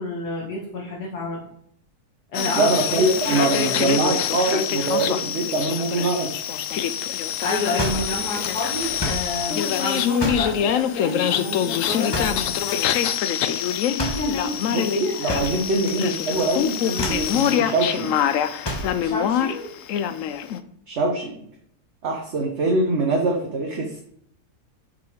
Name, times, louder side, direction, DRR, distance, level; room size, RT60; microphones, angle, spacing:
voice 1, 0.0-1.4 2.3-4.0 7.4-12.5 13.9-15.5 19.0-19.7, left 2 dB, 85° left, -4 dB, 2.1 m, -29 dB
sound 1, 2.3-20.6, left 9 dB, 65° left, 0.9 m, -25 dB
voice 2, 2.5-6.3 14.7-18.1 20.9-21.3 22.0-24.0, right 2 dB, 50° right, 0 dB, 1.3 m, -23 dB
sound 2, 7.8-9.3 10.2-10.6 12.1-12.5 14.0-14.3 15.3-16.1 16.3-16.6 16.9-17.3 18.6-19.0, left 1 dB, 20° left, 1.0 m, -29 dB
6.2 x 5.6 x 5.0 m, 0.67 s
omnidirectional pair, 1.7 m